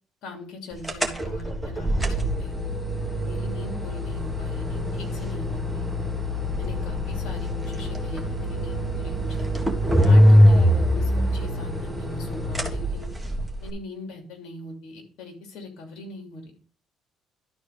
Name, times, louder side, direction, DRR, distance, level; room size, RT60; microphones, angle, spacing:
voice 1, 0.2-2.6 3.1-5.9 6.6-9.5 10.0-13.1 13.6-16.4, left 2 dB, 75° left, 3 dB, 2.6 m, -41 dB
sound 1, 0.8-13.7, equal, ahead, 1.7 m, -23 dB
12.0 x 4.3 x 5.2 m, 0.43 s
cardioid pair, 95°, 0 cm